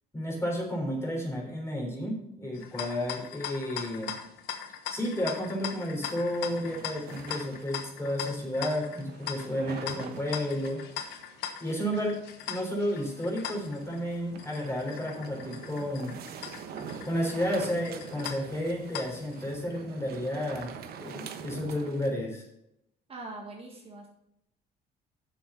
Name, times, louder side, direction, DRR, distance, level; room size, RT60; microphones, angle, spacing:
voice 1, 0.1-4.1 4.9-11.1 11.6-12.2 12.5-16.2 17.0-22.4, equal, 15° left, -1 dB, 3.8 m, -32 dB
sound 1, 2.5-19.4, left 9 dB, 85° left, 1.1 m, -41 dB
sound 2, 6.0-22.1, right 7 dB, 65° right, 1.1 m, -45 dB
voice 2, 23.1-24.1, right 2 dB, 35° right, 0 dB, 2.0 m, -42 dB
7.5 x 7.3 x 5.7 m, 0.81 s
cardioid pair, 110°, 17 cm